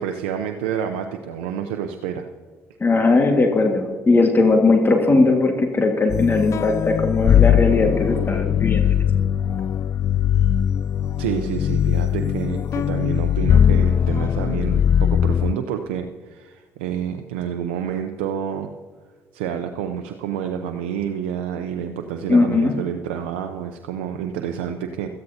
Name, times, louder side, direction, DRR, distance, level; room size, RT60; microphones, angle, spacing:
voice 1, 0.0-2.3 11.2-18.7 19.3-25.1, right 8 dB, 90° right, 5 dB, 0.6 m, -28 dB
voice 2, 2.8-9.0 22.3-22.7, left 3 dB, 35° left, 3 dB, 1.8 m, -18 dB
sound 1, 6.1-15.5, left 9 dB, 50° left, 0.3 m, -20 dB
17.0 x 13.5 x 2.8 m, 1.5 s
hypercardioid pair, 55°, 6 cm